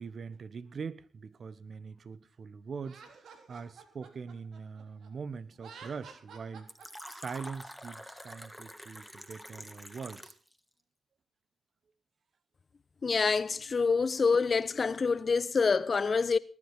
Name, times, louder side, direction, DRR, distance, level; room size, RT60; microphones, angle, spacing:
voice 1, 0.0-6.7 7.1-10.3, right 5 dB, 55° right, 1.3 m, -42 dB
Laughter, 2.8-5.1 5.5-7.4, right 6 dB, 75° right, 3.7 m, -51 dB
Fill (with liquid), 6.7-10.5, equal, ahead, 2.7 m, -47 dB
voice 2, 13.0-16.4, left 4 dB, 50° left, 1.1 m, -26 dB
19.5 x 11.0 x 5.8 m
hypercardioid pair, 40°, 0 cm